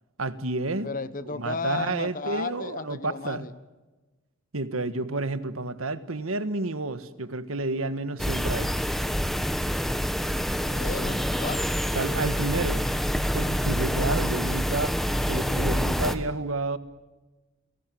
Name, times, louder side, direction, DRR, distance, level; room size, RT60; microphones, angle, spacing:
voice 1, 0.2-0.9 1.3-3.5 4.5-8.7 11.9-15.0 15.3-16.8, right 2 dB, 85° right, 1.5 m, -30 dB
voice 2, 0.8-3.5 10.6-11.7, left 4 dB, 40° left, 1.0 m, -34 dB
sound 1, 8.2-16.2, equal, ahead, 1.3 m, -27 dB
29.5 x 18.0 x 9.3 m
head